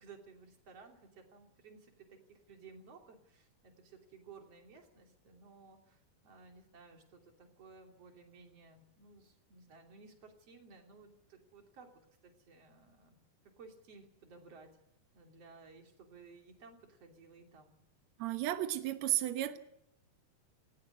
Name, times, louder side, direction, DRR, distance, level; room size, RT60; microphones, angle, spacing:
voice 1, 0.0-11.9 12.2-13.2 13.6-14.7 15.1-17.7, right 4 dB, 40° right, 2 dB, 3.8 m, -57 dB
voice 2, 18.2-19.6, right 13 dB, 85° right, 9 dB, 1.5 m, -33 dB
19.0 x 17.5 x 9.4 m, 0.78 s
omnidirectional pair, 4.6 m